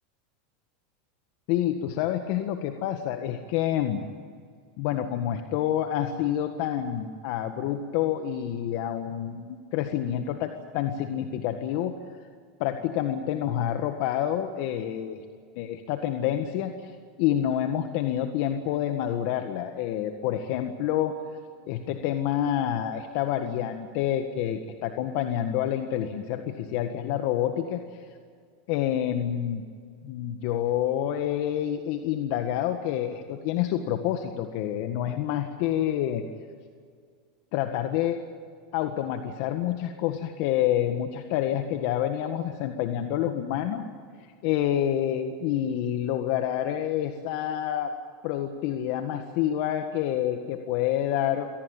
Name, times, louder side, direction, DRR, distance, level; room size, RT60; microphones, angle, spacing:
voice 1, 1.5-4.0 4.8-11.9 12.6-15.2 15.6-16.9 17.2-21.1 21.7-27.8 28.7-29.6 30.0-36.2 37.5-38.2 38.7-43.8 44.4-47.9 48.2-51.5, left 11 dB, 60° left, 7 dB, 1.6 m, -28 dB
24.5 x 18.0 x 9.0 m, 2.1 s
supercardioid pair, 120°, 0 cm